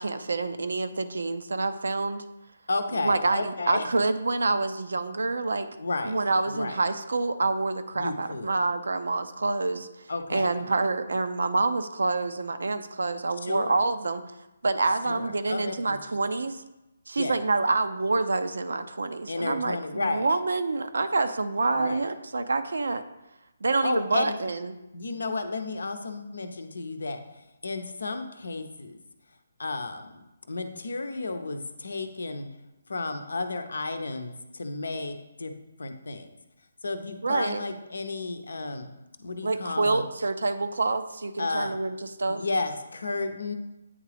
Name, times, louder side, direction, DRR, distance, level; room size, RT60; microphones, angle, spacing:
voice 1, 0.0-2.2 2.9-5.7 6.0-14.2 14.6-16.6 17.1-23.0 23.6-24.7 37.2-37.6 39.4-42.4, right 3 dB, 85° right, 10 dB, 0.5 m, -27 dB
voice 2, 2.7-3.9 5.8-6.1 6.5-6.8 8.0-8.6 10.1-10.6 13.4-13.8 15.1-16.0 17.2-17.4 19.3-20.3 21.8-22.1 23.8-24.4 24.9-27.2 27.6-29.0 29.6-30.2 30.5-32.5 32.9-35.5 35.8-36.3 36.8-38.9 39.2-40.0 41.4-41.8 42.3-43.5, left 3 dB, 80° left, 7 dB, 0.6 m, -32 dB
8.6 x 3.6 x 3.4 m, 0.95 s
hypercardioid pair, 160°, 0 cm